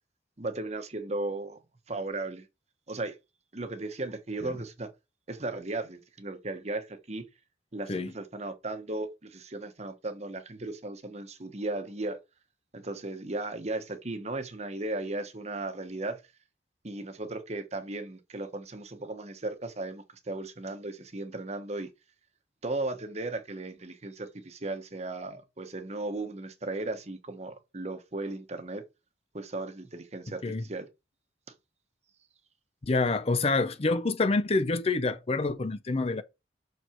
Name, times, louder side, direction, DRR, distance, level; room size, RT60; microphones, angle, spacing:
voice 1, 0.4-1.6 1.9-2.5 2.9-3.2 3.5-4.9 5.3-7.2 7.7-12.2 12.7-16.2 16.8-21.9 22.6-28.8 29.3-30.9, right 2 dB, 40° right, 1.1 m, -36 dB
voice 2, 32.8-36.2, left 3 dB, 35° left, 0.6 m, -27 dB
6.2 x 4.7 x 4.4 m
head